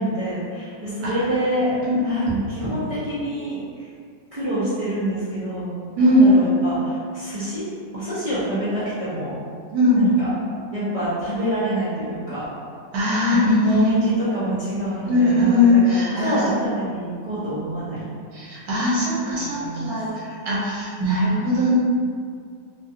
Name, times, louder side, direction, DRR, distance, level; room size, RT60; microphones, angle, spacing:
voice 1, 0.0-1.8 2.0-3.9 4.3-5.7 6.0-7.6 7.9-9.4 9.9-10.3 10.7-12.4 13.3-18.1 19.2-19.9, right 1 dB, 50° right, -13 dB, 0.4 m, -26 dB
voice 2, 6.0-6.3 9.7-10.0 12.9-14.0 15.0-16.4 18.3-21.8, left 1 dB, 70° right, -6 dB, 1.3 m, -19 dB
3.0 x 2.4 x 2.7 m, 2.2 s
omnidirectional pair, 1.8 m